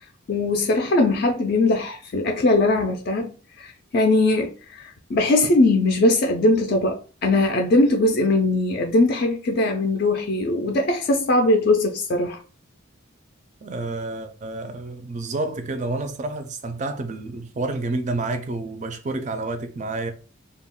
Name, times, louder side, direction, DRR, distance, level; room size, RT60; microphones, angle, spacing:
voice 1, 0.3-12.4, left 2 dB, 45° left, 0.4 m, -20 dB
voice 2, 13.6-20.1, right 2 dB, 35° right, 0.4 m, -29 dB
2.3 x 2.1 x 3.5 m
head